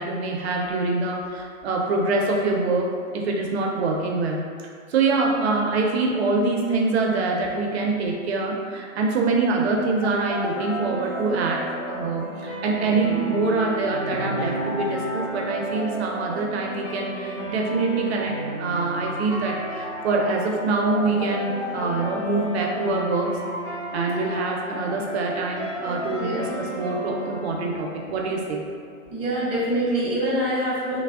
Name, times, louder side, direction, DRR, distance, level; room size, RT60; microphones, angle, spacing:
voice 1, 0.0-4.5 4.9-23.4 23.9-28.6, right 3 dB, 55° right, 0 dB, 0.4 m, -25 dB
sound 1, 10.0-29.0, equal, 40° left, 1.1 m, -33 dB
voice 2, 26.2-26.7 29.1-31.0, right 1 dB, 15° right, -8 dB, 0.7 m, -25 dB
3.3 x 2.0 x 2.2 m, 2.1 s
hypercardioid pair, 130°, 41 cm